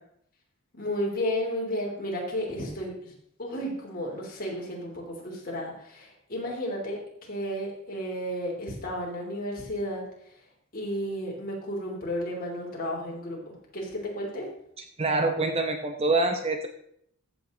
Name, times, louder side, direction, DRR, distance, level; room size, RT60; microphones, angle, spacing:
voice 1, 0.7-3.1 3.4-10.5 10.7-14.5, equal, 40° left, -2 dB, 3.3 m, -33 dB
voice 2, 15.0-16.7, right 2 dB, 25° right, 5 dB, 0.8 m, -25 dB
14.5 x 6.5 x 3.9 m, 0.71 s
head